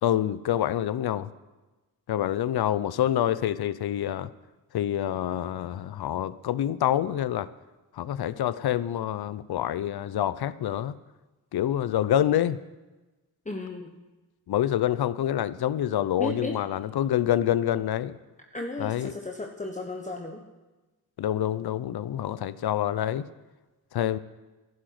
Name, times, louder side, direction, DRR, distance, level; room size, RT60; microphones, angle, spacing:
voice 1, 0.0-1.3 2.1-4.3 4.7-7.5 7.9-11.0 11.5-12.6 14.5-18.2 18.8-19.1 21.2-23.3 23.9-24.2, left 11 dB, 70° left, 17 dB, 0.7 m, -27 dB
voice 2, 13.4-14.0 16.2-16.6 18.5-20.4, left 2 dB, 20° left, 2 dB, 1.4 m, -34 dB
11.5 x 11.0 x 7.7 m, 1.1 s
cardioid pair, 55°, 40 cm